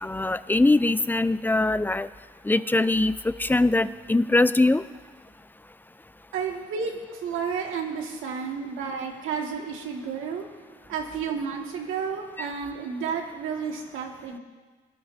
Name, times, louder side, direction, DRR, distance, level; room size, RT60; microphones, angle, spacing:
voice 1, 0.0-2.1 2.4-4.8 12.4-12.5, left 2 dB, 10° left, 14 dB, 0.4 m, -22 dB
voice 2, 6.3-10.5 10.9-14.4, right 6 dB, 85° right, 1 dB, 2.0 m, -31 dB
23.0 x 11.5 x 2.7 m, 1.4 s
cardioid pair, 90°, 20 cm